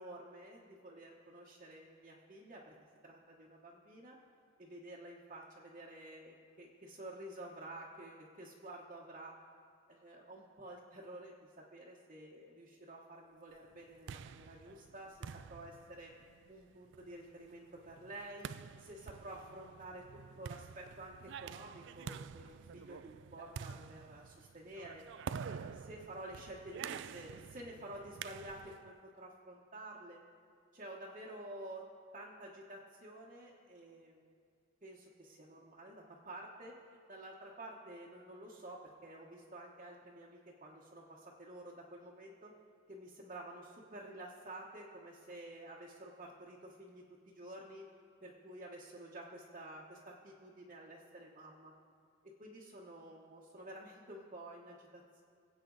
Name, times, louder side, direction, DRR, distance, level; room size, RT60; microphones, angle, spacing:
voice 1, 0.0-2.7 3.0-4.2 4.6-9.4 9.9-16.1 16.5-18.5 18.8-25.0 25.4-30.2 30.7-31.9 32.1-34.3 34.8-36.8 37.1-42.5 42.9-47.9 48.2-51.7 52.2-55.2, right 1 dB, 35° right, -5 dB, 1.2 m, -50 dB
sound 1, 13.7-28.9, right 7 dB, 55° right, 0.3 m, -48 dB
23.0 x 8.3 x 4.0 m, 2.2 s
head